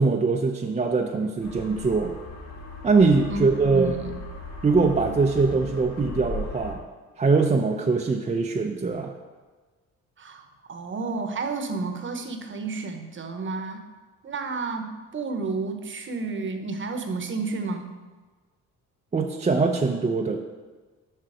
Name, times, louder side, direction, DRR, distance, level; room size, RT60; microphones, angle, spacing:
voice 1, 0.0-2.1 2.8-4.0 4.6-6.8 7.2-9.1 19.1-20.4, right 4 dB, 25° right, 2 dB, 0.6 m, -22 dB
sound 1, 1.4-6.7, left 2 dB, 65° left, 1.8 m, -38 dB
voice 2, 3.3-4.2 10.2-13.8 14.2-17.9, right 3 dB, 40° right, 6 dB, 1.0 m, -31 dB
7.6 x 5.6 x 4.9 m, 1.3 s
cardioid pair, 90°, 30 cm